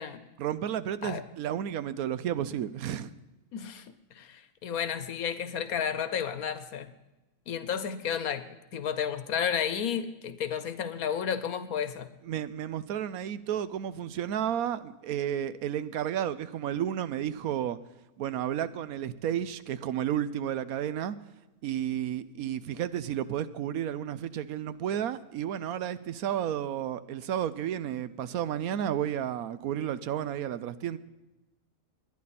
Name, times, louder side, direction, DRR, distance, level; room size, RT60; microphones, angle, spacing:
voice 1, 0.4-3.1 12.3-17.8 18.2-21.2 21.6-31.0, right 10 dB, 75° right, 15 dB, 1.1 m, -32 dB
voice 2, 3.5-6.9 7.5-8.4 8.7-12.1, left 8 dB, 75° left, 12 dB, 1.3 m, -32 dB
20.0 x 11.0 x 4.2 m, 1.0 s
omnidirectional pair, 1.6 m